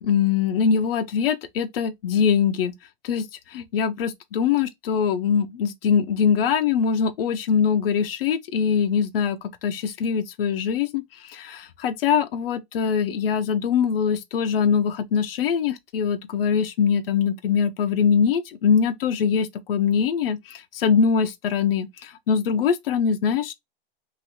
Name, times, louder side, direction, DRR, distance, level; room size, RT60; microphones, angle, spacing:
voice 1, 0.0-2.7 3.0-3.2 3.5-11.0 11.3-23.5, left 7 dB, 75° left, 0.7 m, -23 dB
3.1 x 3.0 x 2.8 m
hypercardioid pair, 155°, 29 cm